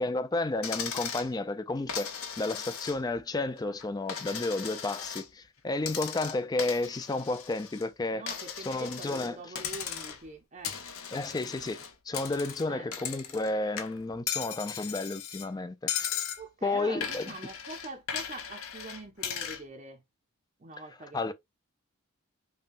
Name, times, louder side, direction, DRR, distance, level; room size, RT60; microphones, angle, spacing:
voice 1, 0.0-2.1 2.4-8.2 8.7-9.4 11.1-16.3 16.6-17.3 21.1-21.3, left 2 dB, 20° left, 0.3 m, -32 dB
Coin (dropping), 0.6-1.3 1.9-3.2 3.6-5.3 5.8-7.9 8.3-9.3 9.6-10.3 10.6-13.5 13.8-15.5 15.9-16.4 17.0-19.6, left 8 dB, 85° left, 0.8 m, -37 dB
voice 2, 8.1-10.8 12.7-12.9 16.4-20.0 20.6-21.3, right 2 dB, 35° right, 0.6 m, -44 dB
5.4 x 2.2 x 2.5 m
head